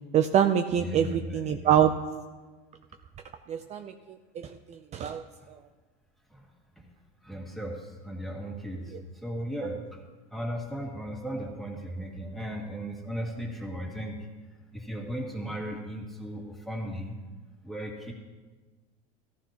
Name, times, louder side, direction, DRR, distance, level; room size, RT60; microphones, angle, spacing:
voice 1, 0.1-1.9 3.5-3.9 4.9-5.2, right 9 dB, 35° right, 7 dB, 0.5 m, -24 dB
voice 2, 0.7-1.8 6.3-6.5 6.8-6.9 7.2-10.0 10.3-14.2 14.7-17.1 17.6-18.1, equal, ahead, -1 dB, 2.2 m, -36 dB
14.5 x 14.0 x 3.0 m, 1.3 s
supercardioid pair, 120°, 20 cm